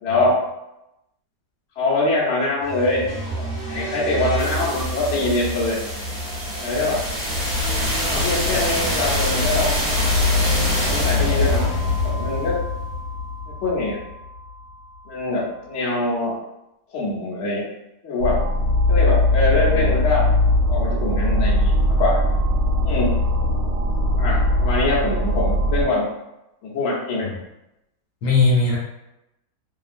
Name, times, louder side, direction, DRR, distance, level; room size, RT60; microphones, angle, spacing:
voice 1, 0.0-0.4 1.8-3.1 3.4-5.8 6.6-7.0 8.0-9.7 10.8-11.7 12.0-12.6 13.6-14.0 15.1-16.3 16.9-17.6 18.0-18.4 18.9-20.3 20.7-22.2 22.8-23.1 24.2-26.1 26.6-27.3, left 2 dB, 55° left, -6 dB, 0.9 m, -23 dB
sound 1, 2.6-14.5, left 1 dB, 20° right, 1.4 m, -24 dB
sound 2, 18.2-25.8, left 1 dB, 80° right, 1.2 m, -20 dB
voice 2, 28.2-28.8, left 3 dB, 75° left, -4 dB, 1.2 m, -19 dB
2.8 x 2.3 x 2.5 m, 0.90 s
omnidirectional pair, 1.8 m